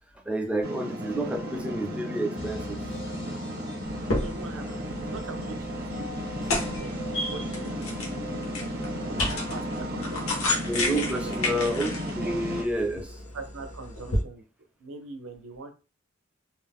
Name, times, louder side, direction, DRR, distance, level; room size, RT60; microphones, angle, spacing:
voice 1, 0.3-2.8 10.7-13.2, right 1 dB, 5° right, 3 dB, 0.4 m, -29 dB
sound 1, 0.6-12.6, equal, 50° right, 0.7 m, -34 dB
sound 2, 2.3-7.5, left 2 dB, 60° left, 0.5 m, -46 dB
sound 3, 3.9-14.2, left 2 dB, 90° left, 0.8 m, -33 dB
voice 2, 3.9-8.8 9.1-10.2 11.1-11.6 13.3-14.4 14.8-15.7, right 3 dB, 85° right, 6 dB, 0.6 m, -43 dB
2.6 x 2.0 x 3.4 m, 0.33 s
head